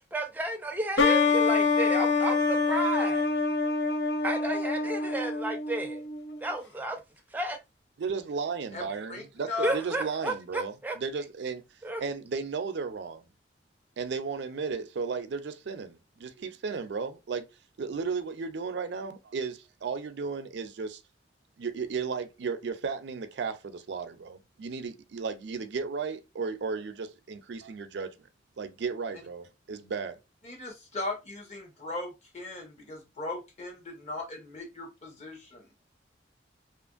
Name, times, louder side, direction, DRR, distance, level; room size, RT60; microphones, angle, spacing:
voice 1, 0.0-3.3 4.2-6.0 6.4-7.0 7.3-7.6 9.6-11.0 11.8-12.0, right 2 dB, 10° right, 0.4 m, -32 dB
sound 1, 1.0-6.4, left 4 dB, 70° left, 0.6 m, -26 dB
voice 2, 8.0-11.6 12.0-13.2 14.0-17.5 17.8-21.0 21.6-28.1 28.6-30.2, right 5 dB, 70° right, 0.4 m, -34 dB
voice 3, 9.1-9.7 30.4-35.7, left 3 dB, 35° left, 0.9 m, -38 dB
2.8 x 2.5 x 2.4 m
head